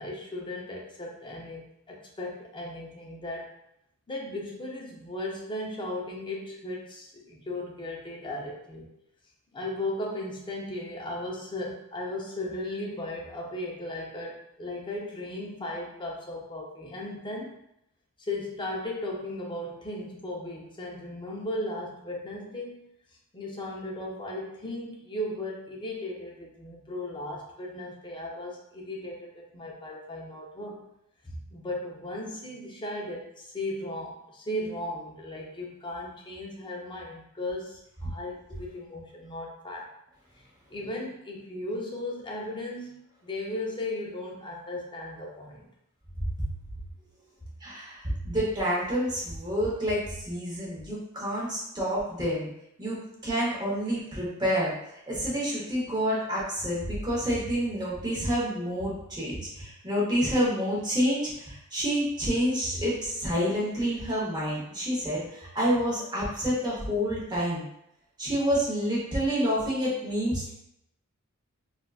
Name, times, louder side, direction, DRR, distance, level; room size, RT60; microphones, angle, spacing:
voice 1, 0.0-3.5 4.1-8.9 9.5-17.5 18.2-22.8 23.3-30.9 31.2-39.9 40.7-45.7, left 1 dB, 20° left, -2 dB, 0.6 m, -36 dB
voice 2, 47.6-52.5 52.8-53.0 53.2-54.7 55.1-67.6 68.2-70.5, equal, 20° right, -6 dB, 0.9 m, -28 dB
3.6 x 2.5 x 2.3 m, 0.78 s
head